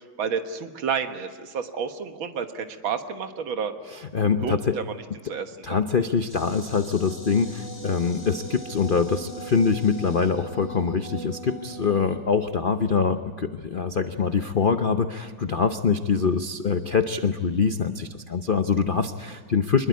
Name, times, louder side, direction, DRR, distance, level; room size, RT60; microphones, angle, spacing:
voice 1, 0.0-3.7 4.4-5.0 5.3-5.8, right 6 dB, 75° right, 7 dB, 2.2 m, -30 dB
voice 2, 3.9-4.7 5.6-19.9, left 5 dB, 90° left, 8 dB, 0.4 m, -24 dB
Insect, 6.3-11.3, left 1 dB, 70° left, 9.0 m, -48 dB
sound 1, 6.7-12.2, right 2 dB, 10° left, 2.0 m, -40 dB
25.0 x 21.0 x 9.5 m, 1.5 s
omnidirectional pair, 2.2 m